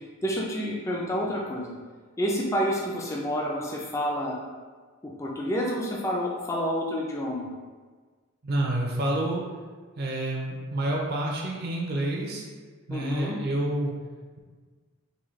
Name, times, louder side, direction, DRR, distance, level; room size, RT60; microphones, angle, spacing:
voice 1, 0.2-1.8 2.2-4.4 5.0-7.5 12.9-13.4, equal, 15° left, -3 dB, 0.4 m, -29 dB
voice 2, 8.4-9.4 10.0-12.5 12.9-13.9, right 1 dB, 50° right, -1 dB, 0.5 m, -28 dB
3.9 x 2.7 x 3.1 m, 1.4 s
head